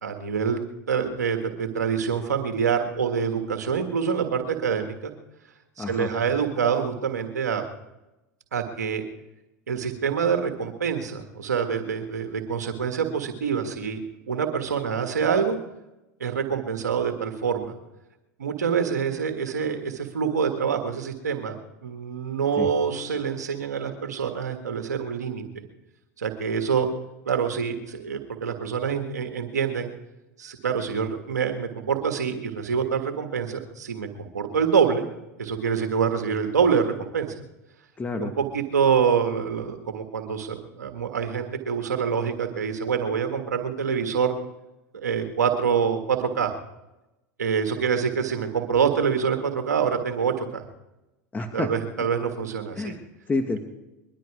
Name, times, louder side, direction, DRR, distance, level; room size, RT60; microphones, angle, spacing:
voice 1, 0.0-5.1 5.8-7.6 8.5-9.0 9.7-14.0 14.3-15.6 16.2-17.7 18.4-21.5 21.8-25.4 26.2-26.9 27.2-29.9 30.4-35.1 35.4-37.3 38.2-44.3 44.9-46.5 47.4-50.6 51.5-52.9, right 6 dB, 90° right, 5 dB, 1.6 m, -26 dB
voice 2, 5.8-6.1 22.6-22.7 38.0-38.3 51.3-51.7 52.7-53.6, left 3 dB, 20° left, 5 dB, 1.8 m, -29 dB
21.5 x 12.5 x 4.9 m, 0.96 s
hypercardioid pair, 90°, 9 cm